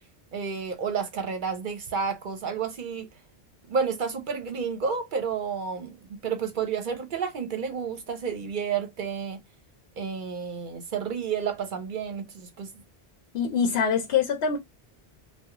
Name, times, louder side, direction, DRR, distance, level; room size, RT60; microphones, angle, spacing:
voice 1, 0.3-3.1 3.7-5.9 6.2-9.4 10.0-12.7, right 6 dB, 55° right, 0.8 m, -30 dB
voice 2, 13.3-14.6, left 6 dB, 75° left, 0.9 m, -24 dB
2.3 x 2.2 x 2.8 m
omnidirectional pair, 1.0 m